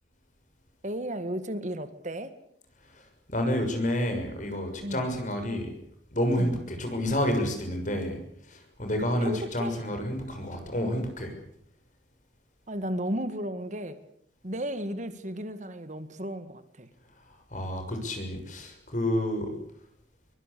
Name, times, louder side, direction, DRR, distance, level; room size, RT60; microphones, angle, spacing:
voice 1, 0.8-2.3 4.8-5.1 6.4-6.6 9.2-9.8 12.7-14.0 14.4-16.9, right 1 dB, 45° right, 11 dB, 1.8 m, -34 dB
voice 2, 3.3-5.7 6.1-8.2 8.5-11.3 17.5-19.5, left 1 dB, 45° left, 5 dB, 6.7 m, -29 dB
23.5 x 22.0 x 8.5 m, 0.72 s
head